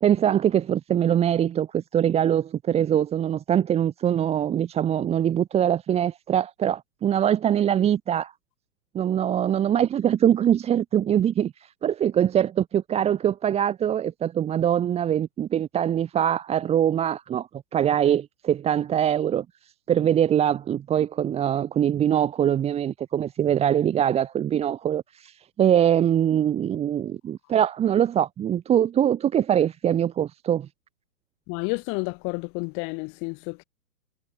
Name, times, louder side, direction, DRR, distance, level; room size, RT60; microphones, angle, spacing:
voice 1, 0.0-8.3 8.9-19.4 19.9-30.7, right 10 dB, 10° right, 2.8 m, -23 dB
voice 2, 31.5-33.6, left 34 dB, 25° left, 6.2 m, -30 dB
figure-of-eight pair, 125°, 48 cm